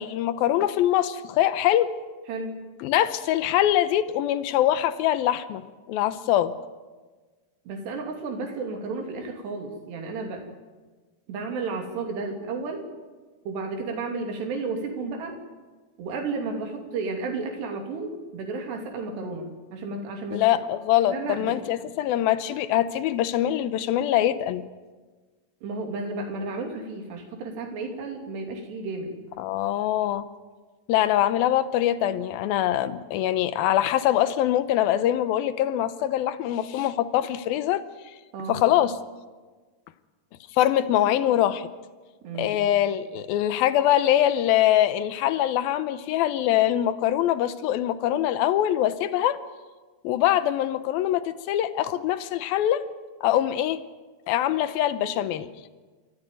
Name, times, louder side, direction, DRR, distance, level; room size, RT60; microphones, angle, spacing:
voice 1, 0.0-1.9 2.8-6.5 20.3-24.6 29.4-30.2 30.9-37.8 38.5-39.0 40.5-41.7 42.4-49.4 50.0-52.8 53.2-53.8 54.3-55.5, left 12 dB, 75° left, 13 dB, 2.5 m, -23 dB
voice 2, 7.7-10.5 11.3-12.8 13.5-15.4 16.0-20.4 21.1-21.5 25.6-29.1 38.3-38.7 42.2-42.7, right 3 dB, 80° right, 3 dB, 4.9 m, -32 dB
29.0 x 14.0 x 9.2 m, 1.3 s
omnidirectional pair, 4.8 m